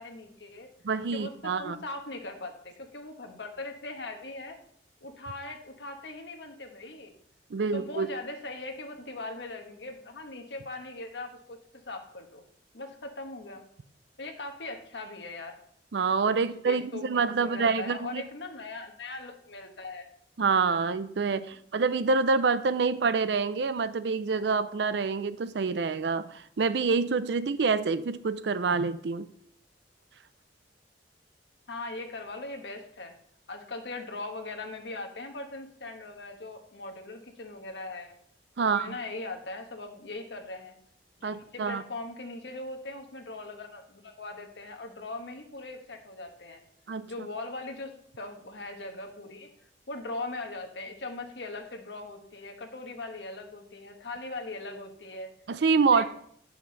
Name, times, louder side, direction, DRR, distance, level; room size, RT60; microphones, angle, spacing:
voice 1, 0.0-0.7 1.1-4.6 5.0-7.1 7.7-11.6 11.8-12.4 12.7-13.6 14.2-15.6 16.6-20.1 21.2-21.5 31.7-33.1 33.5-38.2 38.6-40.8 41.2-46.6 47.0-49.5 49.9-55.3 55.9-56.0, left 2 dB, 75° left, 4 dB, 1.3 m, -40 dB
voice 2, 0.8-1.8 7.5-8.1 15.9-18.2 20.4-29.3 38.6-39.0 41.2-41.8 46.9-47.1 55.5-56.0, right 4 dB, 75° right, 14 dB, 0.5 m, -27 dB
9.6 x 5.8 x 4.0 m, 0.65 s
head